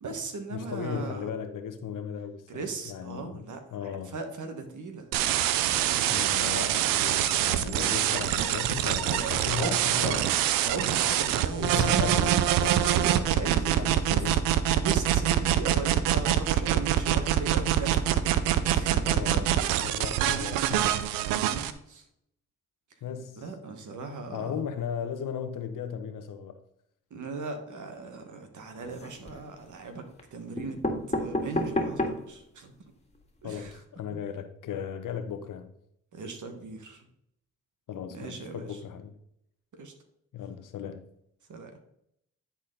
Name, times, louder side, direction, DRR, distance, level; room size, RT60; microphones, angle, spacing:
voice 1, 0.0-1.3 2.5-5.1 6.1-7.0 7.6-8.2 9.1-10.3 10.6-12.2 12.9-14.2 14.8-18.1 18.6-19.5 21.3-22.0 23.4-24.5 27.1-32.7 33.4-33.8 34.1-34.2 36.1-37.1 38.1-38.8 39.7-39.9 41.5-41.8, right 4 dB, 60° right, 1.5 m, -38 dB
voice 2, 0.5-3.4 3.7-4.2 6.1-10.3 11.6-12.9 13.3-14.4 19.0-20.9 23.0-23.4 24.3-26.6 33.4-35.7 37.9-39.2 40.3-41.1, left 7 dB, 70° left, 1.0 m, -36 dB
sound 1, 5.1-21.7, right 11 dB, 90° right, 0.5 m, -25 dB
sound 2, 28.8-29.5 30.2-30.3 30.6-32.4 32.9-33.0 33.2-33.3 33.5-33.7, left 1 dB, 20° left, 1.9 m, -31 dB
10.0 x 4.3 x 3.8 m
supercardioid pair, 45°, 33 cm